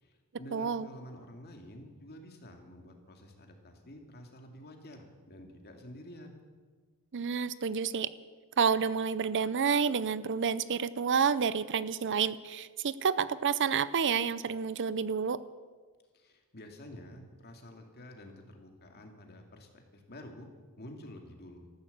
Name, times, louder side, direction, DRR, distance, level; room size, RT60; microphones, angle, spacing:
voice 1, 0.0-6.4 16.1-20.5 20.8-21.7, left 1 dB, 45° left, 3 dB, 2.3 m, -49 dB
voice 2, 0.5-0.9 7.1-8.1 8.6-15.4, right 6 dB, 55° right, 16 dB, 0.6 m, -29 dB
13.5 x 12.5 x 8.1 m, 1.4 s
head